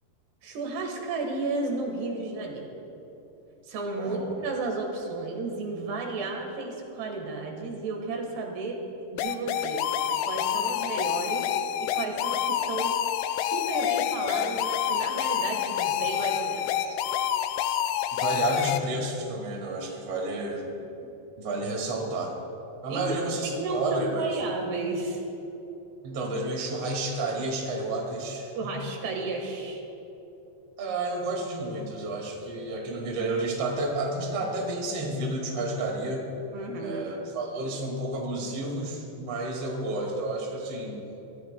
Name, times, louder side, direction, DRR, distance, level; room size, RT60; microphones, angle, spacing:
voice 1, 0.4-2.7 3.6-8.8 9.1-9.8 10.3-11.5 11.8-13.0 13.4-17.0 22.9-25.2 28.6-29.8 36.5-37.0, right 3 dB, 80° right, 1 dB, 3.6 m, -33 dB
voice 2, 4.0-4.3 18.2-20.6 21.4-22.3 22.8-24.2 26.0-28.7 30.8-36.2 36.8-41.0, right 2 dB, 40° right, -1 dB, 2.6 m, -31 dB
sound 1, 9.2-18.8, left 10 dB, 85° left, 2.6 m, -28 dB
26.5 x 14.0 x 2.3 m, 3.0 s
omnidirectional pair, 4.7 m